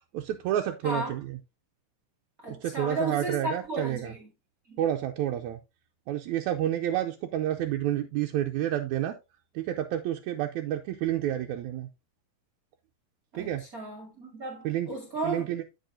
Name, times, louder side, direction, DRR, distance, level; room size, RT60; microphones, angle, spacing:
voice 1, 0.1-1.4 2.5-4.1 4.8-5.6 6.1-9.2 9.6-11.9 13.4-13.6 14.6-14.9 15.2-15.6, right 12 dB, 80° right, 2.0 m, -29 dB
voice 2, 0.8-1.2 2.4-4.3 4.7-4.8 13.3-15.6, right 2 dB, 30° right, 2.3 m, -34 dB
13.0 x 4.8 x 2.6 m
omnidirectional pair, 3.4 m